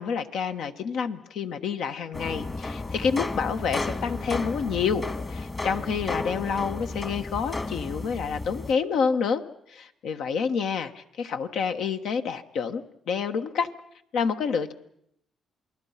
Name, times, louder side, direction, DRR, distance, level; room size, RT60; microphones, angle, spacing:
voice 1, 0.0-9.4 9.7-13.7 14.1-14.7, left 6 dB, 75° left, 7 dB, 1.3 m, -28 dB
sound 1, 2.1-8.7, left 3 dB, 30° left, 1.6 m, -33 dB
28.5 x 20.0 x 5.8 m, 0.75 s
cardioid pair, 90°, 0 cm